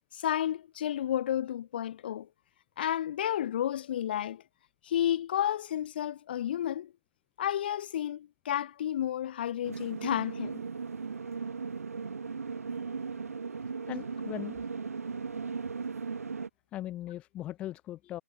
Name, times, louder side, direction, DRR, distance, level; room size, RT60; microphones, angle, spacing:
voice 1, 0.1-2.3 2.8-4.4 4.8-6.9 7.4-10.6, left 11 dB, 35° left, 2.8 m, -31 dB
sound 1, 9.6-16.5, right 5 dB, 65° right, 5.7 m, -37 dB
voice 2, 13.9-14.7 16.7-18.2, left 13 dB, 15° left, 1.4 m, -39 dB
figure-of-eight pair, 150°, 9 cm